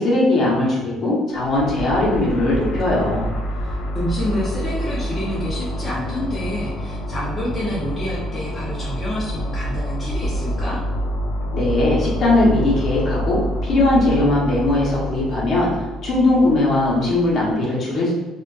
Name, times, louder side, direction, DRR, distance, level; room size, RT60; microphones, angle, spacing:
voice 1, 0.0-3.3 11.5-15.7 16.0-18.1, left 2 dB, 45° left, -6 dB, 0.9 m, -19 dB
sound 1, 1.3-17.5, equal, 75° left, 0.4 m, -27 dB
voice 2, 3.6-10.8, equal, 15° left, -8 dB, 0.6 m, -28 dB
2.4 x 2.3 x 2.3 m, 1.1 s
cardioid pair, 140°, 0 cm